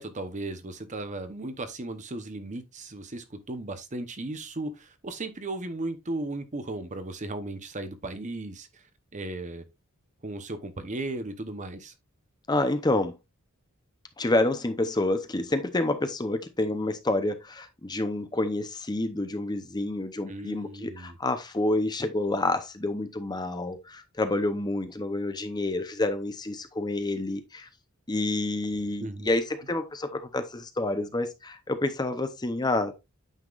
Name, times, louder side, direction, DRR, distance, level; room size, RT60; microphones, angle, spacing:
voice 1, 0.0-8.8 9.1-9.6 10.2-11.9 20.3-21.2 29.0-29.3, right 2 dB, 35° right, 0.9 m, -36 dB
voice 2, 12.5-13.1 14.2-27.7 28.1-32.9, left 2 dB, 20° left, 0.7 m, -28 dB
9.1 x 5.8 x 2.4 m
head